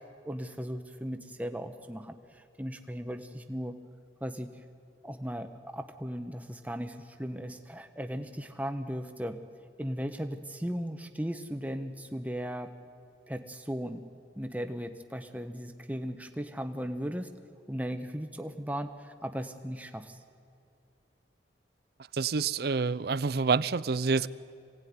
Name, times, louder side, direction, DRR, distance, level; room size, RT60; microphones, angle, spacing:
voice 1, 0.3-3.8 4.2-4.6 5.0-9.4 9.8-12.7 13.3-14.1 14.3-17.3 17.7-20.2, equal, 10° right, 7 dB, 1.1 m, -37 dB
voice 2, 22.1-24.3, right 4 dB, 60° right, 18 dB, 0.5 m, -27 dB
25.5 x 18.0 x 9.6 m, 2.5 s
head